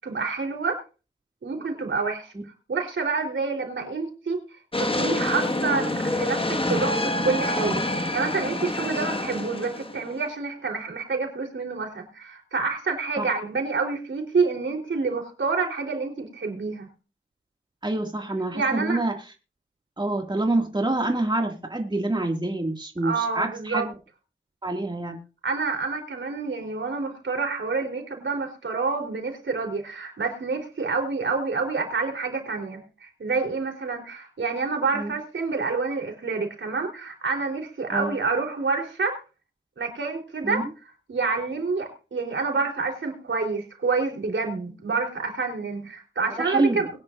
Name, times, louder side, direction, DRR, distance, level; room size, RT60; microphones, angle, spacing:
voice 1, 0.0-0.8 1.4-2.3 2.7-4.4 4.8-16.9 18.5-19.0 23.0-23.9 25.4-39.2 39.8-40.6 41.1-46.9, right 4 dB, 75° right, 2 dB, 3.8 m, -28 dB
sound 1, 4.7-10.2, left 1 dB, 25° left, 1.7 m, -27 dB
voice 2, 17.8-19.1 20.0-23.9 24.6-25.2 34.9-35.1 37.9-38.1 40.4-40.6 46.4-46.8, right 2 dB, 20° right, 3 dB, 2.2 m, -26 dB
22.0 x 10.5 x 2.6 m, 0.34 s
cardioid pair, 45°, 20 cm